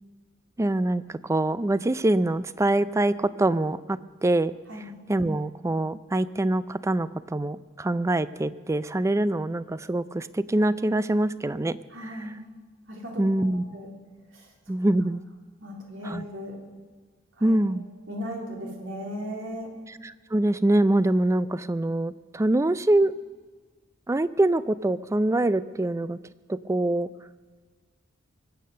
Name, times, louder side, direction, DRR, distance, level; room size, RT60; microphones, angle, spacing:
voice 1, 0.6-4.5 5.1-12.2 13.2-13.6 14.7-15.2 16.0-16.2 17.4-17.9 19.9-23.1 24.1-26.2 26.5-27.1, right 1 dB, 15° right, 16 dB, 0.4 m, -24 dB
voice 2, 11.9-12.4 12.9-13.9 14.3-14.5 15.6-16.6 17.4-17.6 18.1-19.7, equal, 75° right, 0 dB, 3.4 m, -37 dB
23.0 x 8.6 x 6.7 m, 1.4 s
head